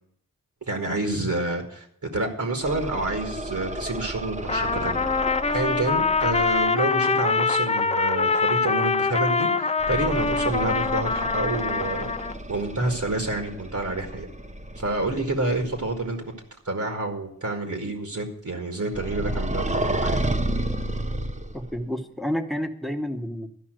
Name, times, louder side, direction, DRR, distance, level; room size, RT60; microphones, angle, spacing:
voice 1, 0.6-5.0 5.5-12.1 12.5-14.3 14.7-16.2 16.6-20.2, right 2 dB, 60° right, 3 dB, 1.7 m, -28 dB
sound 1, 2.6-6.7 9.8-16.1 18.9-21.8, right 1 dB, 20° right, 0.8 m, -32 dB
Trumpet, 4.5-12.4, left 4 dB, 20° left, 0.4 m, -24 dB
voice 2, 21.5-23.5, equal, ahead, 7 dB, 1.1 m, -30 dB
13.0 x 5.5 x 7.7 m, 0.69 s
wide cardioid pair, 55°, 34 cm